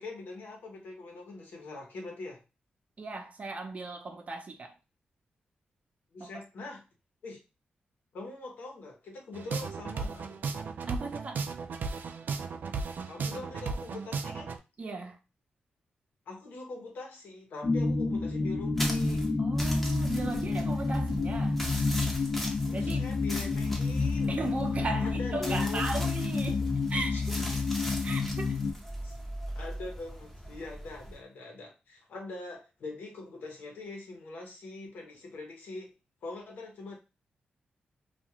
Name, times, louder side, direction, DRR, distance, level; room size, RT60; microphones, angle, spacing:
voice 1, 0.0-2.4 6.1-6.8 7.2-7.4 8.1-10.4 13.1-14.6 16.3-19.4 22.6-24.4 25.0-26.0 27.1-27.6 28.6-28.7 29.0-29.1 29.5-35.9 36.2-37.0, left 2 dB, 75° left, 1.0 m, -43 dB
voice 2, 3.0-4.7 6.2-6.4 10.9-11.4 14.8-15.2 19.4-21.6 22.7-23.1 24.3-27.4 28.0-28.6, right 3 dB, 45° right, 0.7 m, -37 dB
sound 1, 9.3-14.6, right 4 dB, 70° right, 0.3 m, -35 dB
sound 2, 17.6-28.7, left 3 dB, 40° left, 0.5 m, -29 dB
sound 3, 18.7-31.2, equal, 5° left, 0.8 m, -40 dB
2.5 x 2.4 x 2.9 m
cardioid pair, 75°, 3 cm